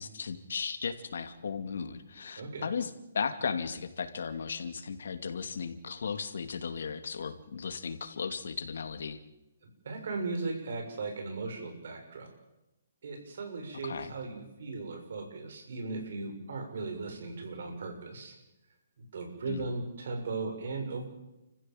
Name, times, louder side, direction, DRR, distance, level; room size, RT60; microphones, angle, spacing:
voice 1, 0.0-9.2 13.8-14.1 19.5-19.7, left 6 dB, 70° left, 9 dB, 2.4 m, -36 dB
voice 2, 2.4-2.7 9.8-12.3 13.0-18.4 19.0-21.0, right 3 dB, 60° right, 5 dB, 6.7 m, -37 dB
29.5 x 15.0 x 7.9 m, 0.96 s
hypercardioid pair, 160°, 0 cm